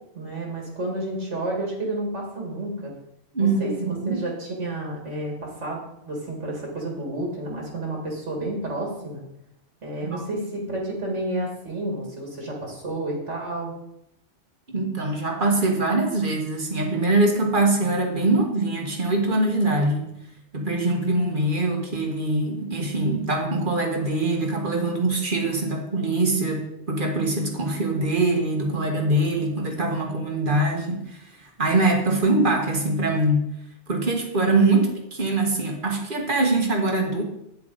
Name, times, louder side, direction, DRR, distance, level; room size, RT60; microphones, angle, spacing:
voice 1, 0.1-2.9 3.4-9.2 9.8-13.7, right 1 dB, 75° right, -1 dB, 2.6 m, -30 dB
voice 2, 3.3-4.2 10.0-10.3 14.7-20.1 20.5-33.4 33.9-37.2, right 2 dB, 45° right, 1 dB, 1.5 m, -23 dB
8.8 x 7.5 x 4.0 m, 0.79 s
omnidirectional pair, 1.2 m